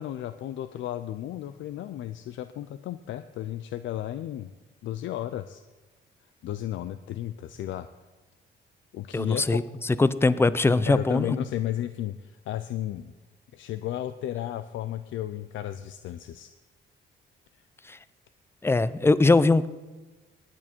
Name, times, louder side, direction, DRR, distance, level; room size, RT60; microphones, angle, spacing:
voice 1, 0.0-4.5 4.8-5.6 6.4-7.9 8.9-9.6 10.9-13.1 13.5-16.5, left 12 dB, 75° left, 11 dB, 0.5 m, -33 dB
voice 2, 9.1-9.6 10.0-11.4 17.9-18.0 18.6-19.7, left 3 dB, 10° left, 17 dB, 0.5 m, -21 dB
19.5 x 8.8 x 4.5 m, 1.2 s
cardioid pair, 90°, 20 cm